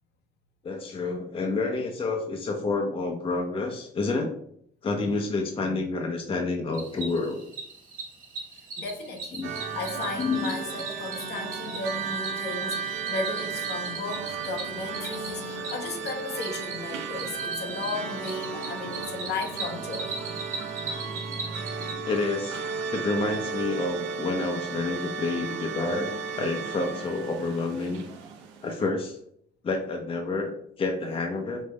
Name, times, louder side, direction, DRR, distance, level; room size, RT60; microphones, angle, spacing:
voice 1, 0.6-4.3 4.8-7.4 9.4-9.5 10.2-10.6 22.0-22.6 22.9-26.1 26.4-28.0 28.6-29.2 29.6-31.6, left 3 dB, 30° left, 2 dB, 0.8 m, -29 dB
Cricket, 6.7-21.9, right 3 dB, 45° right, 1.3 m, -39 dB
voice 2, 8.5-20.2, left 3 dB, 65° left, 3 dB, 1.1 m, -35 dB
sound 1, 9.4-28.9, right 5 dB, 90° right, 0.8 m, -34 dB
5.4 x 2.6 x 3.3 m, 0.67 s
cardioid pair, 110°, 18 cm